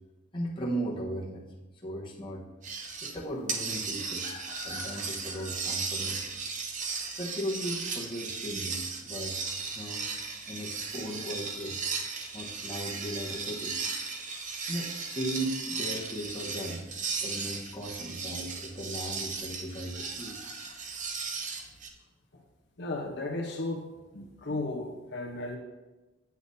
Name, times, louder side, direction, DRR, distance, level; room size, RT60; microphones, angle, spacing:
voice 1, 0.3-1.4 1.8-2.5 3.0-6.4 7.2-9.4 9.6-10.1 10.5-11.8 12.3-13.8 14.3-14.4 14.7-16.8 17.2-21.4, right 1 dB, 25° left, -4 dB, 1.2 m, -37 dB
sound 1, 2.6-3.2 3.5-21.9, right 4 dB, 40° right, 0.7 m, -36 dB
voice 2, 22.8-23.9 24.1-25.6, left 2 dB, 65° left, -1 dB, 0.9 m, -34 dB
8.1 x 8.0 x 2.7 m, 1.1 s
head